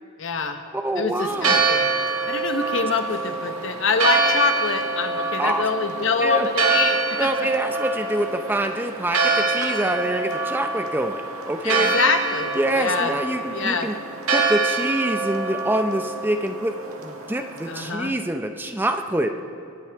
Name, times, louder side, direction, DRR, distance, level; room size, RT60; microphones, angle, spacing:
voice 1, 0.2-0.6 1.0-1.8 2.3-7.5 11.6-13.1 13.5-13.9 17.7-18.1, left 4 dB, 60° left, 7 dB, 1.0 m, -25 dB
voice 2, 0.7-1.6 5.4-5.7 6.2-6.5 7.2-11.9 12.6-14.0 14.3-19.4, right 1 dB, 10° right, 6 dB, 0.5 m, -25 dB
Church bell, 1.3-17.9, right 4 dB, 75° right, 1.7 m, -25 dB
23.0 x 13.0 x 3.6 m, 2.6 s
head